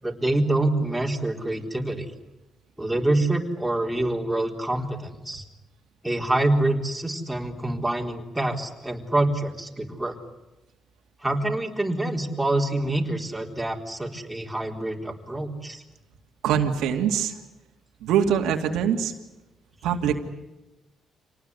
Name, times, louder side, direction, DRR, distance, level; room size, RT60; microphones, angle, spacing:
voice 1, 0.0-2.1 2.8-5.4 6.0-10.2 11.2-15.8, right 2 dB, 5° right, 0 dB, 4.0 m, -26 dB
voice 2, 16.4-17.3 18.0-19.1 19.8-20.3, right 8 dB, 90° right, 3 dB, 2.5 m, -23 dB
27.0 x 19.0 x 9.8 m, 1.0 s
cardioid pair, 90°, 0 cm